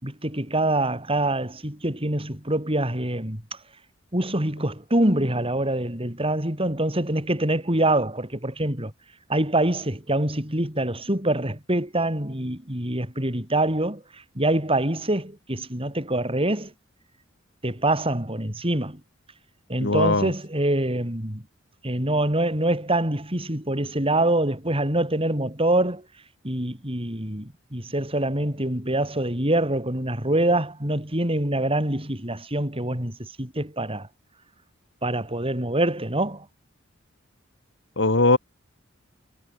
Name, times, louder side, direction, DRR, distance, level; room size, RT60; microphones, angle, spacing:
voice 1, 0.0-3.4 4.1-8.9 9.3-14.0 14.4-16.7 17.6-19.0 19.7-21.4 21.8-26.0 26.4-34.1 35.0-36.5, right 1 dB, 30° right, 7.3 m, -25 dB
voice 2, 19.8-20.3 38.0-38.4, left 2 dB, 65° left, 2.2 m, -20 dB
head